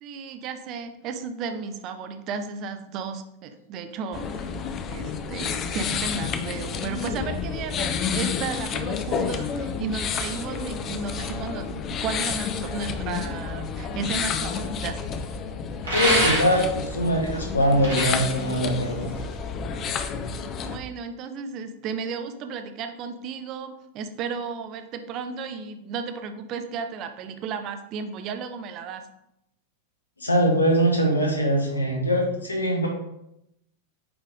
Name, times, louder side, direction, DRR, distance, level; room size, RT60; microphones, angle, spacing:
voice 1, 0.0-4.5 4.9-15.0 20.6-29.0, right 5 dB, 35° right, 8 dB, 0.7 m, -34 dB
sound 1, 4.1-20.8, left 6 dB, 30° left, 0.6 m, -30 dB
sound 2, 15.8-16.8 17.6-19.3, right 1 dB, 70° right, 2.1 m, -26 dB
voice 2, 15.9-19.1 30.2-32.9, equal, 80° left, 1 dB, 1.4 m, -22 dB
8.7 x 3.2 x 3.6 m, 0.82 s
figure-of-eight pair, 90°, 0 cm